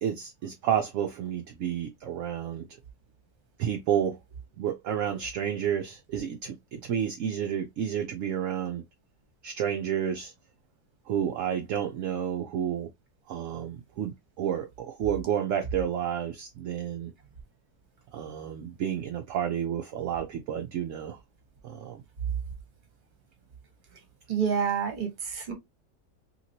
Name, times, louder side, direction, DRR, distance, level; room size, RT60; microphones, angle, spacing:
voice 1, 0.0-2.7 3.6-4.2 4.6-8.8 9.4-10.3 11.1-12.9 13.3-17.1 18.1-21.2 21.6-22.0, right 9 dB, 70° right, 0.7 m, -30 dB
voice 2, 24.3-25.5, right 7 dB, 35° right, 1.0 m, -28 dB
2.9 x 2.8 x 2.7 m
omnidirectional pair, 1.7 m